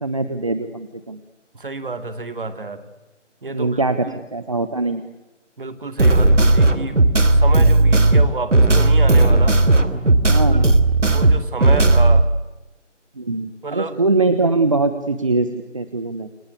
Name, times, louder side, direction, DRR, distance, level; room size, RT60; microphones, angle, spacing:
voice 1, 0.0-1.2 3.5-5.0 10.3-10.7 13.2-16.3, right 3 dB, 25° right, 10 dB, 1.1 m, -22 dB
voice 2, 1.5-2.9 3.4-4.2 5.6-9.6 10.5-10.7 11.1-12.3 13.6-14.0, right 3 dB, 45° right, 10 dB, 2.7 m, -30 dB
sound 1, 6.0-12.2, right 2 dB, 75° right, 3.0 m, -14 dB
29.0 x 24.0 x 8.3 m, 1.0 s
figure-of-eight pair, 165°, 37 cm